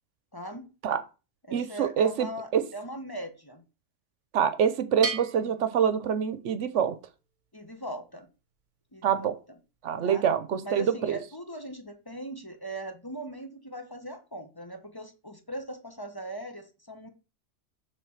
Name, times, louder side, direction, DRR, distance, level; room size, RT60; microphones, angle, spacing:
voice 1, 0.3-0.7 1.5-3.6 7.5-8.3 8.9-9.3 10.0-10.2 10.6-17.1, right 1 dB, 20° left, 5 dB, 1.1 m, -39 dB
voice 2, 1.5-2.3 2.5-2.6 4.3-6.9 9.0-9.3 9.8-11.2, right 8 dB, 80° right, 12 dB, 1.1 m, -25 dB
Bell, 5.0-6.7, right 3 dB, 40° right, 1.2 m, -37 dB
6.5 x 3.9 x 6.3 m, 0.32 s
omnidirectional pair, 1.2 m